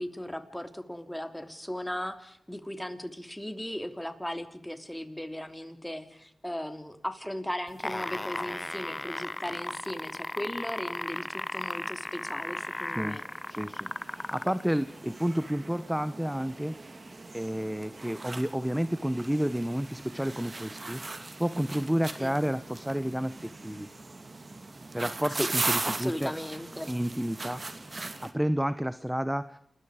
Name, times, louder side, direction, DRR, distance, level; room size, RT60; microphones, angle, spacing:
voice 1, 0.0-13.3 22.2-22.3 25.3-25.5 25.9-26.9, left 1 dB, 10° left, 8 dB, 3.1 m, -37 dB
sound 1, 7.7-14.6 15.5-15.6, left 1 dB, 25° left, 1.1 m, -35 dB
sound 2, 10.9-11.0 11.2-28.3, right 3 dB, 45° right, 2.5 m, -39 dB
voice 2, 12.9-13.2 13.5-16.8 17.3-23.9 24.9-26.3 26.9-27.6 28.2-29.6, equal, 5° right, 14 dB, 0.9 m, -30 dB
29.0 x 21.0 x 5.0 m, 0.73 s
cardioid pair, 45°, 0 cm